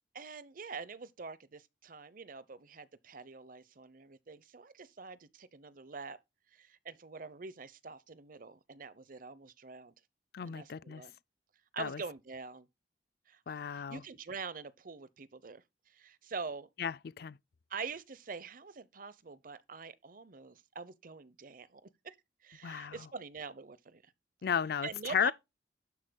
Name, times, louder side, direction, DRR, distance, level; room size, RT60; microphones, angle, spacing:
voice 1, 0.1-6.2 6.5-9.9 10.4-11.2 11.7-12.7 13.3-15.6 15.9-16.7 17.7-22.1 22.4-24.0 24.8-25.3, right 5 dB, 50° right, 0.8 m, -45 dB
voice 2, 10.3-11.0 11.8-12.0 13.5-14.0 16.8-17.4 22.6-23.0 24.4-25.3, left 7 dB, 60° left, 0.4 m, -34 dB
12.0 x 9.8 x 2.3 m
head